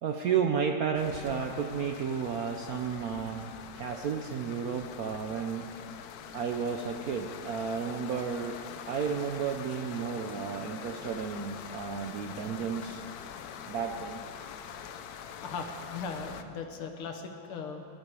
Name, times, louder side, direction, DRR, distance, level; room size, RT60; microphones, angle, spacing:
voice 1, 0.0-3.5 3.8-5.7 6.3-8.6 8.9-13.0 13.7-14.2, right 6 dB, 80° right, 5 dB, 0.8 m, -32 dB
sound 1, 0.9-16.4, left 8 dB, 70° left, 0.9 m, -44 dB
voice 2, 15.4-17.9, left 5 dB, 90° left, 4 dB, 2.1 m, -40 dB
18.5 x 11.5 x 4.8 m, 2.8 s
omnidirectional pair, 2.3 m